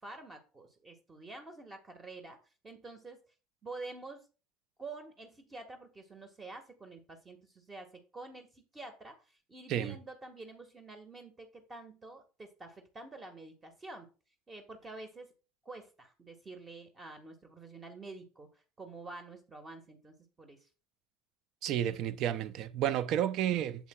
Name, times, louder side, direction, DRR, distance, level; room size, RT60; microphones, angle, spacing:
voice 1, 0.0-2.4 2.6-3.2 3.6-4.3 4.8-7.9 8.1-14.1 14.5-15.3 15.6-20.7, right 3 dB, 25° right, 1.7 m, -48 dB
voice 2, 21.6-23.9, right 10 dB, 55° right, 0.6 m, -31 dB
8.0 x 7.5 x 2.4 m
hypercardioid pair, 70°, 0 cm